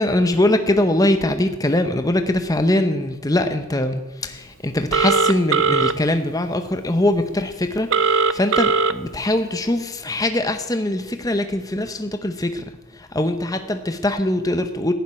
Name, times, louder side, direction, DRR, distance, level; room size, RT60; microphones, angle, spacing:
voice 1, 0.0-12.6 12.9-14.9, left 1 dB, 15° left, 8 dB, 0.7 m, -22 dB
Telephone, 4.9-5.9 7.9-8.9, right 4 dB, 55° right, 0.6 m, -18 dB
15.5 x 7.5 x 9.7 m, 1.2 s
head